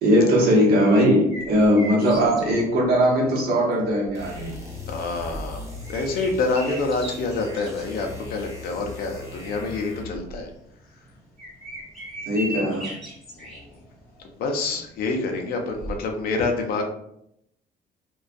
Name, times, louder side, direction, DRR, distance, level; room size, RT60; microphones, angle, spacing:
voice 1, 0.0-4.5 12.3-12.9, equal, 70° right, -2 dB, 0.9 m, -19 dB
sound 1, 0.8-16.0, right 1 dB, ahead, 1.0 m, -40 dB
sound 2, 4.1-10.3, left 2 dB, 20° right, 0.6 m, -38 dB
voice 2, 4.9-10.5 13.4-13.7 14.4-16.8, left 3 dB, 65° left, 3 dB, 0.5 m, -27 dB
2.2 x 2.2 x 2.5 m, 0.75 s
cardioid pair, 110°, 17 cm